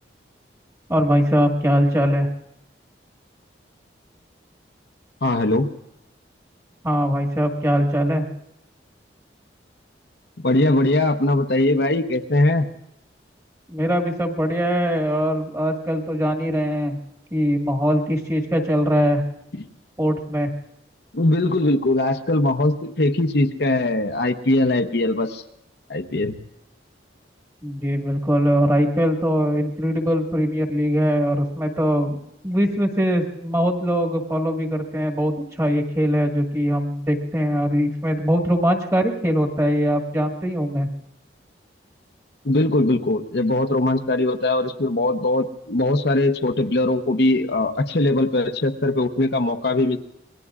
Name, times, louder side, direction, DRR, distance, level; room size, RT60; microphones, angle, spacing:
voice 1, 0.9-2.3 6.8-8.2 13.7-17.0 17.3-19.2 20.0-20.5 27.6-32.2 32.4-40.9, equal, 15° right, 2 dB, 1.6 m, -21 dB
voice 2, 5.2-5.7 10.4-12.7 19.6-19.7 21.1-25.4 25.9-26.3 42.4-50.0, left 2 dB, 60° left, 6 dB, 0.8 m, -20 dB
27.5 x 21.5 x 2.4 m, 0.84 s
head